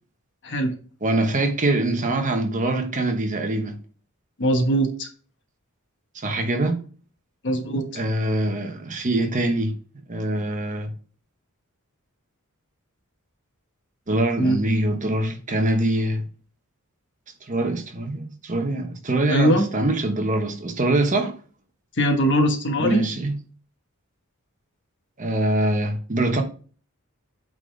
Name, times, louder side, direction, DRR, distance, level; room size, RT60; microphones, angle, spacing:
voice 1, 1.0-3.8 6.1-6.8 7.9-9.8 10.1-10.9 14.1-16.2 17.5-21.3 22.8-23.4 25.2-26.4, right 1 dB, 35° right, 1.0 m, -24 dB
voice 2, 4.4-5.1 7.4-8.0 14.4-14.6 19.3-19.6 22.0-23.0, right 1 dB, 55° left, 1.3 m, -21 dB
8.8 x 4.0 x 3.4 m
head